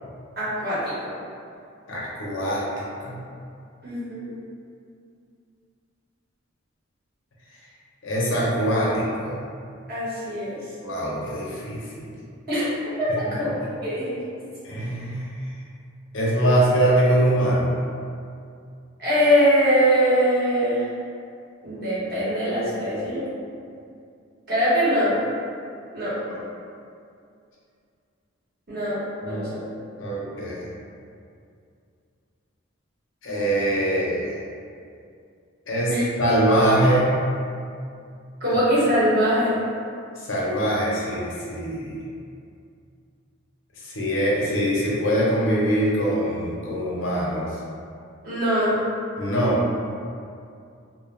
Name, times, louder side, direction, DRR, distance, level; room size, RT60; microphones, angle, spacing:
voice 1, 0.4-0.9 3.8-4.3 9.9-10.6 12.5-12.7 13.0-14.2 19.0-20.9 21.6-23.3 24.5-25.2 25.9-26.2 28.7-29.6 35.9-36.0 38.4-39.6 48.2-48.8, equal, 45° right, -11 dB, 0.9 m, -22 dB
voice 2, 1.9-3.3 8.0-9.4 10.8-12.1 13.2-13.3 14.6-15.5 16.1-17.7 26.3-26.4 29.2-29.5 30.0-30.7 33.2-34.4 35.7-37.1 40.2-42.0 43.8-47.5 49.2-49.6, right 1 dB, 70° left, -5 dB, 0.6 m, -23 dB
2.1 x 2.1 x 3.2 m, 2.4 s
head